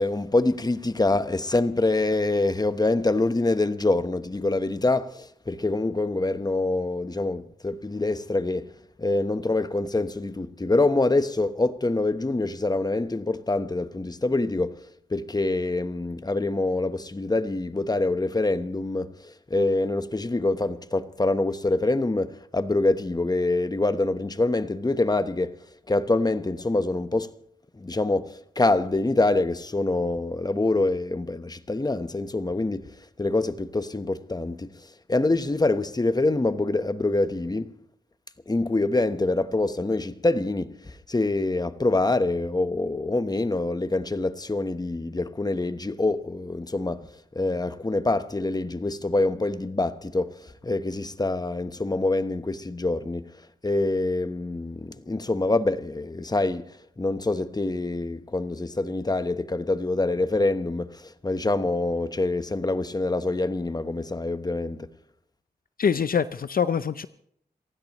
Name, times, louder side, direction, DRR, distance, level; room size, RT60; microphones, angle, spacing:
voice 1, 0.0-8.7 9.0-14.8 15.1-25.6 25.9-27.3 27.7-32.9 33.2-34.7 35.1-37.7 38.5-47.0 47.3-53.3 53.6-56.7 57.0-64.9, left 2 dB, 25° left, 1.1 m, -25 dB
voice 2, 65.8-67.1, left 7 dB, 60° left, 0.6 m, -24 dB
28.0 x 15.5 x 3.1 m
cardioid pair, 65°, 17 cm